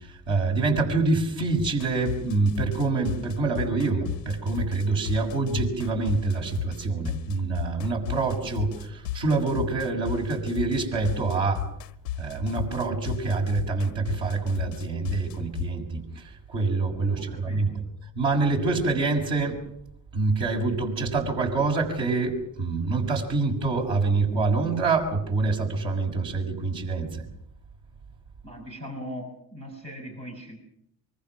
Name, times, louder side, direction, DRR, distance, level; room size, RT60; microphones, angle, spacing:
voice 1, 0.0-11.6 12.2-17.8 18.1-19.6 20.1-27.3, right 3 dB, 65° right, 1 dB, 6.5 m, -26 dB
sound 1, 1.6-15.7, left 14 dB, 85° left, 0.8 m, -34 dB
voice 2, 17.2-17.8 28.4-30.6, equal, 90° right, -2 dB, 6.3 m, -39 dB
25.0 x 24.0 x 6.1 m, 0.76 s
figure-of-eight pair, 55°, 48 cm